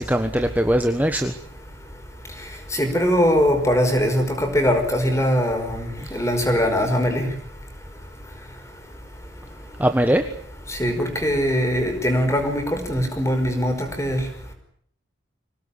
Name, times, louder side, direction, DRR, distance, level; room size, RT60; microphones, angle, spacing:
voice 1, 0.0-1.3 6.0-6.2 9.8-10.3, equal, 10° right, 7 dB, 1.3 m, -21 dB
voice 2, 2.7-7.3 10.7-14.2, equal, 15° left, 6 dB, 5.2 m, -21 dB
25.5 x 18.0 x 9.9 m, 0.65 s
head